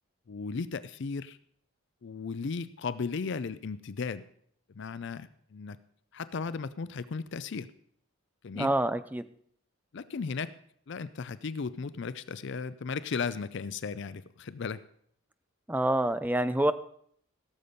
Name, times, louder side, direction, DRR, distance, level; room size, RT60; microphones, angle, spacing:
voice 1, 0.3-1.4 2.0-4.2 4.7-5.8 6.1-7.7 8.4-8.7 9.9-10.5 10.9-14.8, left 5 dB, 55° left, 15 dB, 0.4 m, -35 dB
voice 2, 8.6-9.2 15.7-16.7, right 1 dB, 10° right, 12 dB, 0.4 m, -27 dB
16.5 x 6.9 x 5.2 m, 0.64 s
head